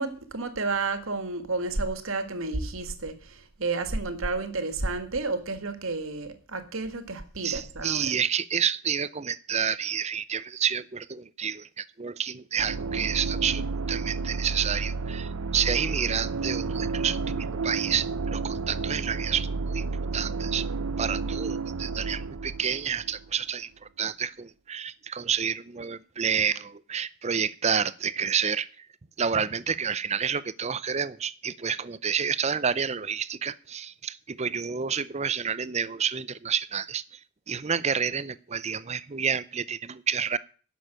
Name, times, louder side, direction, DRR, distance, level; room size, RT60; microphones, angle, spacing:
voice 1, 0.0-8.1, right 3 dB, 60° right, 10 dB, 1.8 m, -31 dB
voice 2, 7.4-19.9 20.1-20.7 21.0-23.7 24.0-28.9 29.2-37.2 37.5-40.4, right 7 dB, 30° right, 17 dB, 0.5 m, -29 dB
sound 1, 12.6-23.4, right 4 dB, 80° right, 0.7 m, -31 dB
11.0 x 7.1 x 9.0 m, 0.41 s
head